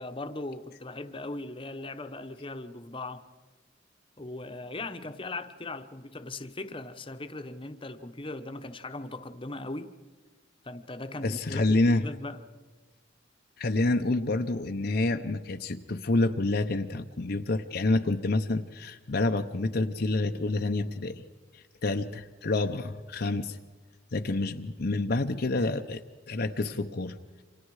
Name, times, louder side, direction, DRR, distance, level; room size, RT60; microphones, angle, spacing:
voice 1, 0.0-3.2 4.2-9.9 10.6-11.8 12.0-12.4, left 2 dB, 25° left, 8 dB, 1.1 m, -39 dB
voice 2, 11.2-12.0 13.6-21.2 21.5-23.6 24.1-27.2, left 2 dB, 55° left, 5 dB, 0.8 m, -28 dB
29.5 x 26.0 x 4.9 m, 1.3 s
head